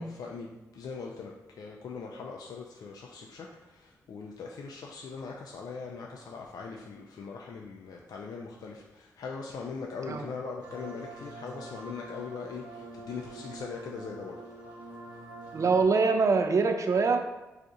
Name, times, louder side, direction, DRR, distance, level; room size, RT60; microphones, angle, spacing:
voice 1, 0.0-14.4, left 5 dB, 65° left, 0 dB, 0.4 m, -41 dB
sound 1, 10.6-15.8, right 2 dB, 80° right, 0.8 m, -45 dB
voice 2, 15.5-17.2, right 4 dB, 50° right, 5 dB, 0.4 m, -24 dB
2.4 x 2.4 x 4.0 m, 1.0 s
supercardioid pair, 40°, 7 cm